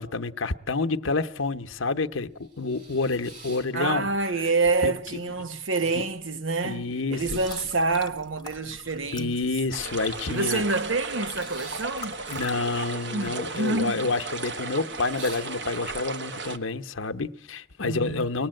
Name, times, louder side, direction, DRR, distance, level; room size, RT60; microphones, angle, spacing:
voice 1, 0.0-4.1 4.8-4.9 5.9-6.0 6.6-7.4 9.1-10.6 12.3-18.5, left 3 dB, 85° left, 0.9 m, -28 dB
sound 1, 2.4-4.4 4.7-5.5 5.8-5.9 6.1-10.2 10.5-13.3 13.6-14.1 14.5-14.6 14.9-16.0, right 2 dB, 40° right, 3.4 m, -46 dB
voice 2, 3.7-9.3 10.3-12.2 13.1-14.1 17.8-18.2, right 3 dB, 80° right, 1.0 m, -27 dB
sound 2, 7.2-12.5, left 5 dB, 20° left, 0.8 m, -44 dB
sound 3, 9.7-16.6, right 3 dB, 60° right, 1.2 m, -35 dB
24.5 x 19.0 x 7.7 m
head